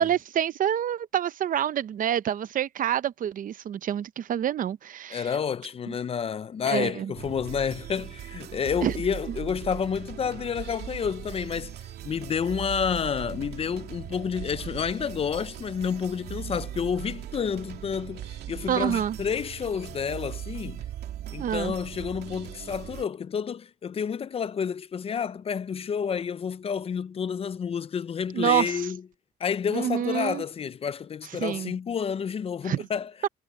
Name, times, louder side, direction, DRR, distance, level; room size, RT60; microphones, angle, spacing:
voice 1, 0.0-5.3 5.9-6.0 6.6-7.1 8.8-8.9 18.7-19.2 21.4-21.8 28.3-28.8 29.7-30.4 31.4-31.7 32.6-32.8 33.2-33.3, right 10 dB, 55° right, 0.7 m, -27 dB
voice 2, 5.1-11.7 12.0-20.8 21.3-29.0 29.4-33.1, left 7 dB, 35° left, 0.5 m, -30 dB
sound 1, 7.1-23.0, right 11 dB, 85° right, 2.4 m, -39 dB
cardioid pair, 130°, 16 cm